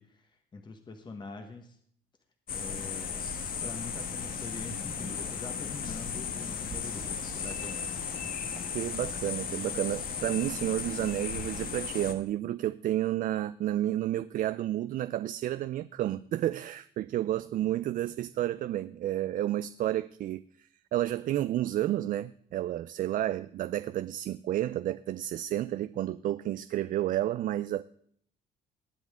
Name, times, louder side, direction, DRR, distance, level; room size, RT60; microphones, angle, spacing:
voice 1, 0.0-1.8 2.5-3.3 3.6-7.9, left 3 dB, 25° left, 1.3 m, -44 dB
sound 1, 2.5-12.1, left 6 dB, 55° left, 1.5 m, -36 dB
sound 2, 3.1-11.8, right 5 dB, 70° right, 1.7 m, -52 dB
voice 2, 8.7-27.8, right 13 dB, 55° right, 0.4 m, -31 dB
19.5 x 8.0 x 3.6 m
cardioid pair, 110°, 17 cm